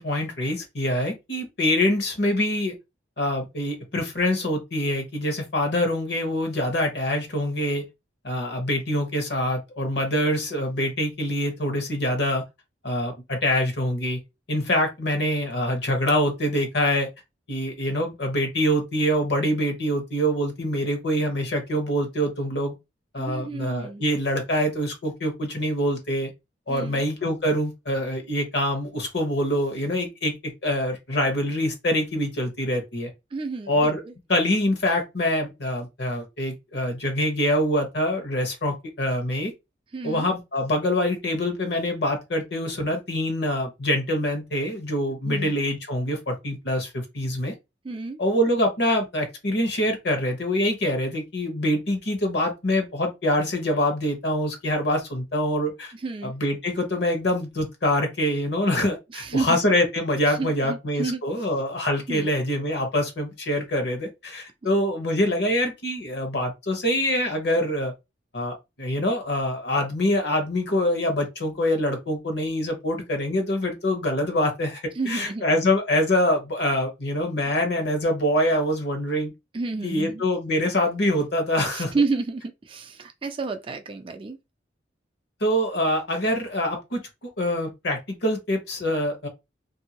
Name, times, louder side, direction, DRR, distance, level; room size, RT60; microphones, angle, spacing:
voice 1, 0.0-2.7 3.2-7.8 8.2-12.4 12.8-14.2 14.5-17.1 17.5-22.7 23.1-26.3 26.7-33.1 33.7-34.0 34.3-39.5 40.0-47.5 48.2-55.9 56.2-67.9 68.3-79.3 79.8-81.9 85.4-89.3, left 1 dB, 60° left, 1.0 m, -25 dB
voice 2, 23.2-24.0 26.7-27.0 33.3-33.9 39.9-40.3 45.2-45.5 47.8-48.2 56.0-56.3 59.1-59.6 60.3-61.2 62.1-62.3 75.0-75.4 79.5-80.2 81.7-84.4, right 3 dB, 30° right, 0.3 m, -30 dB
2.8 x 2.7 x 2.9 m
head